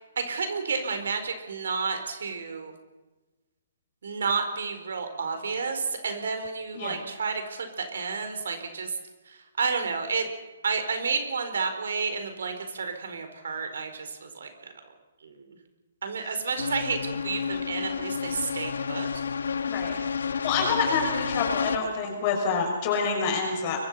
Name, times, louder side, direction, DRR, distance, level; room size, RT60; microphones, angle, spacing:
voice 1, 0.2-2.7 4.0-8.9 9.6-10.2 10.6-14.7 15.2-15.4 16.0-19.1, right 5 dB, 80° right, 7 dB, 4.5 m, -31 dB
sound 1, 16.6-21.8, left 6 dB, 90° left, 1.4 m, -30 dB
voice 2, 19.7-20.0 20.4-23.8, left 5 dB, 30° left, 1 dB, 6.1 m, -27 dB
23.0 x 22.5 x 5.7 m, 1.2 s
hypercardioid pair, 165°, 0 cm